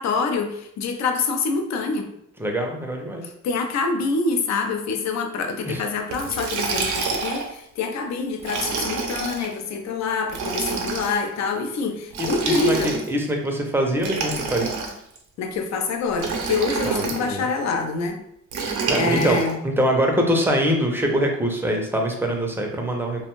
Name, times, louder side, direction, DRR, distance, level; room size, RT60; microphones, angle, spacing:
voice 1, 0.0-2.1 3.4-13.0 15.4-18.2 19.0-19.6, left 4 dB, 65° left, 5 dB, 0.5 m, -26 dB
voice 2, 2.4-3.2 5.7-5.8 12.2-14.7 16.8-17.5 18.6-23.3, equal, 5° right, 1 dB, 0.5 m, -24 dB
Liquid, 6.1-7.5 8.4-9.5 10.3-11.2 12.1-13.2 14.0-15.2 16.2-17.2 18.5-19.5, right 4 dB, 80° right, 0.6 m, -27 dB
2.5 x 2.2 x 2.9 m, 0.75 s
cardioid pair, 90°, 30 cm